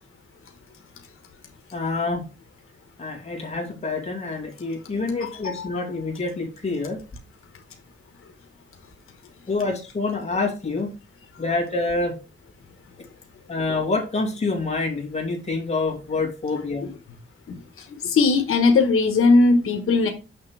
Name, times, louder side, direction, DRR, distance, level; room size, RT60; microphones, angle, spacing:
voice 1, 1.7-2.2 3.0-7.0 9.5-10.9 11.4-12.2 13.5-16.9, left 3 dB, 30° left, 0 dB, 2.4 m, -27 dB
voice 2, 5.2-5.7 16.8-16.9 17.5-20.1, left 3 dB, 90° left, 5 dB, 1.2 m, -19 dB
6.6 x 6.5 x 3.3 m, 0.31 s
wide cardioid pair, 135°, 21 cm